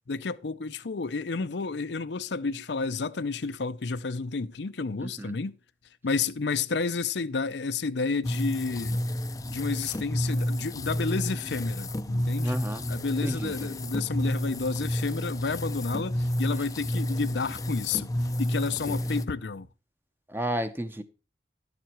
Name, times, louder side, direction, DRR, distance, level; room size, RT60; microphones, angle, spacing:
voice 1, 0.1-5.5 6.0-9.0 9.5-12.6 12.9-18.1 18.4-19.7, left 4 dB, 70° left, 0.6 m, -31 dB
voice 2, 5.0-5.3 12.4-12.8 13.2-13.8 18.9-19.1 20.3-21.0, right 1 dB, 10° right, 0.8 m, -32 dB
sound 1, 8.2-19.3, equal, 20° left, 0.5 m, -30 dB
11.5 x 7.4 x 4.4 m
head